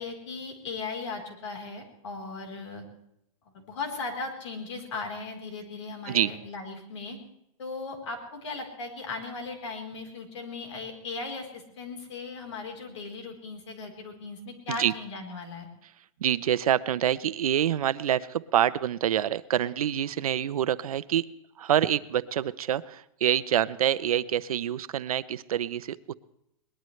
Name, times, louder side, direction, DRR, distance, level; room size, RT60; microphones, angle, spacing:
voice 1, 0.0-2.8 3.5-7.2 7.6-15.7, left 3 dB, 55° left, 3 dB, 4.0 m, -37 dB
voice 2, 16.2-21.3 21.6-26.1, right 10 dB, 80° right, 15 dB, 0.7 m, -26 dB
21.5 x 20.0 x 3.2 m, 0.79 s
supercardioid pair, 175°, 18 cm